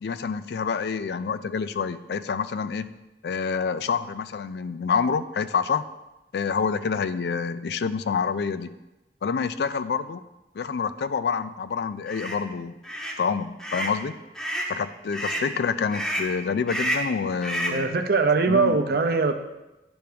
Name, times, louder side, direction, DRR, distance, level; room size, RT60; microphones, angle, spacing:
voice 1, 0.0-2.9 3.2-5.8 6.3-8.8 9.2-10.2 10.5-12.7 13.2-14.1 14.7-17.9 18.5-18.8, left 5 dB, 65° left, 13 dB, 0.3 m, -27 dB
sound 1, 12.1-12.4 12.8-13.2 13.6-14.0 14.3-14.7 15.1-15.5 15.9-16.3 16.7-17.1 17.4-17.8, right 1 dB, 5° left, 0.7 m, -29 dB
voice 2, 17.7-19.3, right 4 dB, 55° right, 6 dB, 0.6 m, -21 dB
10.0 x 3.4 x 5.0 m, 0.99 s
head